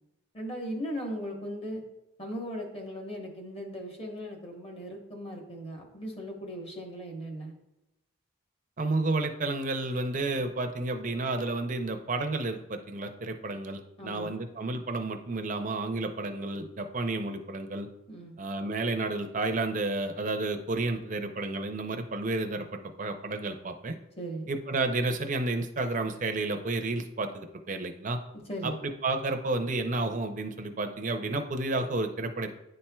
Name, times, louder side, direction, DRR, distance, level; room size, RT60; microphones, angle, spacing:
voice 1, 0.3-1.8 2.2-7.5 14.0-14.4 18.1-18.4 24.2-24.5 28.5-28.8, equal, 25° left, 1 dB, 1.0 m, -38 dB
voice 2, 8.8-17.9 18.4-22.7 23.0-24.0 24.5-28.2 28.6-28.7 29.0-32.5, right 2 dB, 35° right, 6 dB, 0.5 m, -31 dB
10.0 x 4.3 x 2.3 m, 0.95 s
head